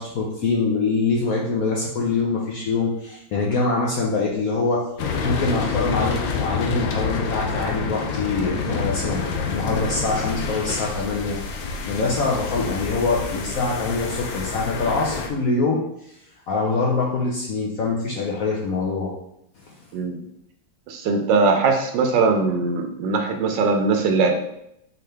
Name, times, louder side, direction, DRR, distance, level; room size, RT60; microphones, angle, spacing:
voice 1, 0.0-4.8 5.2-11.4 11.9-16.1 16.5-19.1, left 3 dB, 65° left, -2 dB, 0.9 m, -24 dB
sound 1, 5.0-15.3, left 5 dB, 80° left, 1.4 m, -28 dB
voice 2, 19.9-20.2 20.9-24.3, right 4 dB, 75° right, 4 dB, 1.3 m, -20 dB
4.2 x 3.8 x 3.3 m, 0.77 s
omnidirectional pair, 2.1 m